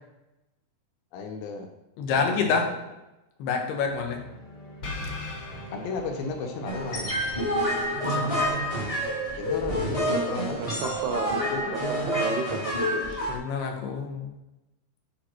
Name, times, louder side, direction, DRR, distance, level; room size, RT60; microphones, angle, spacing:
voice 1, 1.1-1.7 2.1-2.7 5.7-7.1 9.3-10.7 11.5-11.8, left 4 dB, 75° left, 4 dB, 2.4 m, -34 dB
voice 2, 2.0-2.7 3.4-4.2 8.1-8.4 13.3-14.3, left 5 dB, 90° left, 3 dB, 3.2 m, -27 dB
sound 1, 3.8-8.9, left 1 dB, 45° left, 1.7 m, -40 dB
sound 2, 6.6-13.4, equal, 30° left, 0.6 m, -28 dB
voice 3, 10.6-13.3, right 7 dB, 85° right, 6 dB, 2.9 m, -34 dB
9.8 x 4.6 x 4.4 m, 0.95 s
omnidirectional pair, 4.5 m